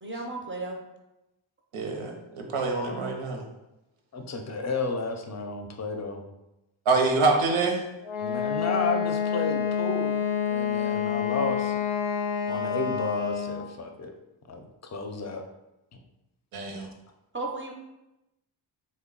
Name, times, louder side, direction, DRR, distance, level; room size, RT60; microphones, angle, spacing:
voice 1, 0.0-0.8 17.3-17.7, right 2 dB, 25° right, 1 dB, 0.5 m, -34 dB
voice 2, 1.7-3.4 6.9-7.8 16.5-16.9, right 3 dB, 85° right, 2 dB, 0.8 m, -25 dB
voice 3, 4.1-6.2 8.2-10.1 10.5-11.8 12.5-14.1 14.5-15.4, left 3 dB, 35° left, 5 dB, 0.5 m, -32 dB
Wind instrument woodwind instrument, 8.0-13.7, left 7 dB, 90° left, 0.5 m, -28 dB
3.7 x 2.2 x 3.7 m, 0.94 s
cardioid pair, 85°, 48 cm